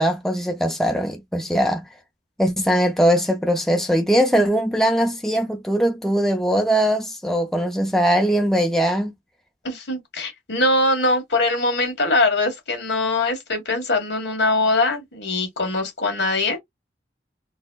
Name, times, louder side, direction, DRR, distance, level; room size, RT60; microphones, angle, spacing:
voice 1, 0.0-1.8 2.4-9.1, equal, ahead, 0.4 m, -20 dB
voice 2, 9.6-16.6, left 2 dB, 85° left, 1.5 m, -22 dB
4.0 x 2.1 x 2.3 m
head